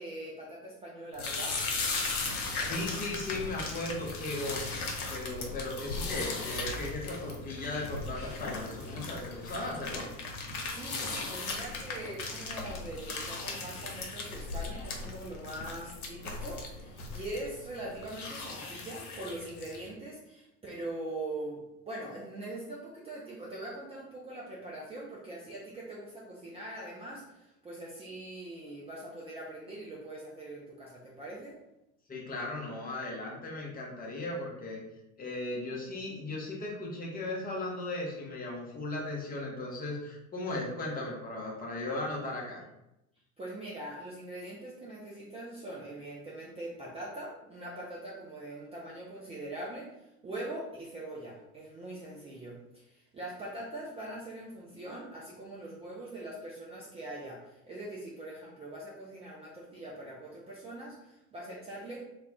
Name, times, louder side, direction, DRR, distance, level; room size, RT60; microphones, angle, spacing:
voice 1, 0.0-1.6 10.7-31.6 43.4-62.0, right 1 dB, 15° right, -6 dB, 0.5 m, -42 dB
sound 1, 1.1-19.9, left 3 dB, 80° left, 0.6 m, -37 dB
voice 2, 2.6-4.6 5.1-10.1 32.1-34.8 35.2-42.6, left 2 dB, 20° left, -2 dB, 0.7 m, -37 dB
2.3 x 2.1 x 3.5 m, 0.87 s
figure-of-eight pair, 70°, 43 cm